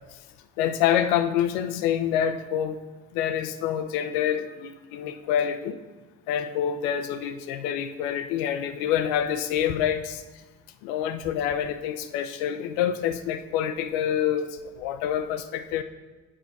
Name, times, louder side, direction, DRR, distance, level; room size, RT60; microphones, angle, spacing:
voice 1, 0.6-2.8 3.1-5.8 6.3-10.2 10.8-15.8, left 9 dB, 80° left, 9 dB, 0.7 m, -27 dB
7.4 x 4.9 x 5.8 m, 1.3 s
hypercardioid pair, 65°, 40 cm